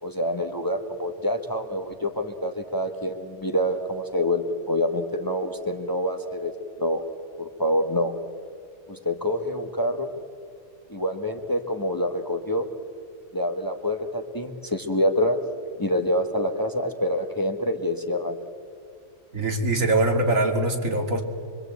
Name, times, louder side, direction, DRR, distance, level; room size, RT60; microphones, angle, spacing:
voice 1, 0.0-6.5 6.8-7.0 7.4-8.1 8.9-10.1 10.9-12.7 13.3-15.4 15.8-18.4, left 1 dB, 15° left, 5 dB, 1.2 m, -26 dB
voice 2, 19.3-21.2, right 2 dB, 85° right, 2 dB, 2.9 m, -22 dB
24.5 x 24.0 x 8.2 m, 2.3 s
omnidirectional pair, 1.3 m